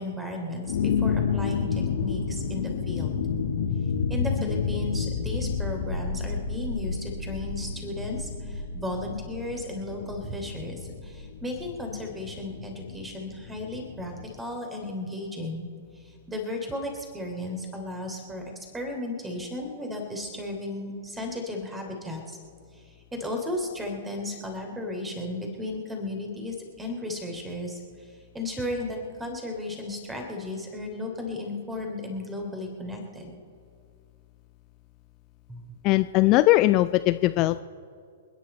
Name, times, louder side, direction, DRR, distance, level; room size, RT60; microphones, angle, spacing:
voice 1, 0.0-3.2 4.1-15.7 16.0-18.4 18.7-22.4 22.7-33.3 35.5-35.6, left 1 dB, 10° right, 3 dB, 3.1 m, -35 dB
sound 1, 0.7-14.3, left 5 dB, 55° left, 1.7 m, -30 dB
voice 2, 35.8-37.6, left 17 dB, 35° left, 13 dB, 0.3 m, -20 dB
28.0 x 10.0 x 4.4 m, 2.3 s
figure-of-eight pair, 105°, 0 cm